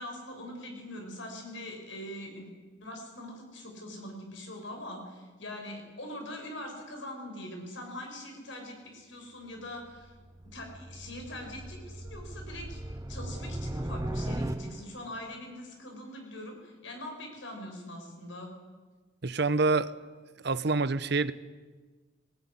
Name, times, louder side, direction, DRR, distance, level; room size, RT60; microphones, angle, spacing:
voice 1, 0.0-2.5 2.8-10.1 10.4-18.5, left 1 dB, 75° left, 2 dB, 6.0 m, -42 dB
sound 1, 9.9-15.1, right 1 dB, 15° right, 0.7 m, -37 dB
voice 2, 19.2-19.9 20.4-21.3, right 3 dB, 60° right, 15 dB, 0.9 m, -26 dB
19.5 x 19.0 x 9.9 m, 1.3 s
head